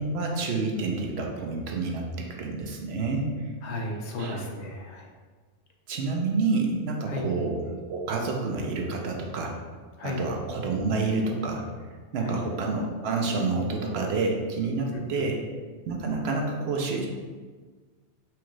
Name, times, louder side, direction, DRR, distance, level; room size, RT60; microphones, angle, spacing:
voice 1, 0.0-3.3 4.2-4.4 5.9-9.6 10.0-11.6 12.1-15.4 15.9-17.1, right 3 dB, 70° right, 1 dB, 0.8 m, -28 dB
voice 2, 3.6-5.1 7.0-7.3 10.0-10.2 12.2-12.4 15.2-15.3, left 2 dB, 85° left, 0 dB, 0.9 m, -34 dB
4.4 x 2.4 x 3.0 m, 1.4 s
omnidirectional pair, 1.1 m